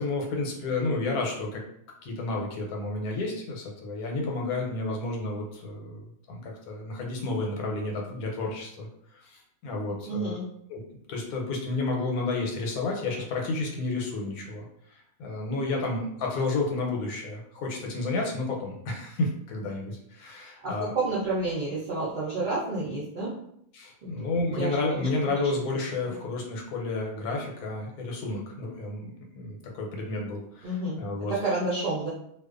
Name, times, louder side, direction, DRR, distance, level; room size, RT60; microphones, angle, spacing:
voice 1, 0.0-1.6 2.0-10.4 10.7-10.8 11.1-20.9 23.7-31.4, left 2 dB, 85° left, 0 dB, 1.1 m, -31 dB
voice 2, 10.1-10.4 20.6-23.3 24.0-24.1 24.6-25.1 25.3-25.5 30.6-31.0 31.4-32.1, right 2 dB, 60° right, -8 dB, 0.5 m, -30 dB
2.4 x 2.2 x 2.4 m, 0.72 s
omnidirectional pair, 1.5 m